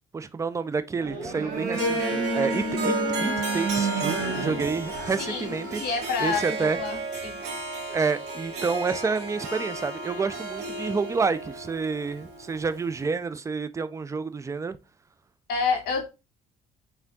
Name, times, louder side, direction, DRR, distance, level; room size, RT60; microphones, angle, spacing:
voice 1, 0.1-5.8 6.2-6.8 7.9-14.8, right 4 dB, 20° right, 0.4 m, -29 dB
sound 1, 0.9-6.2, right 3 dB, 50° right, 1.7 m, -31 dB
Harp, 1.7-13.0, right 1 dB, 75° right, 2.0 m, -33 dB
voice 2, 5.2-7.4 15.5-16.1, left 5 dB, 75° left, 1.8 m, -29 dB
4.5 x 3.4 x 2.7 m
cardioid pair, 110°, 17 cm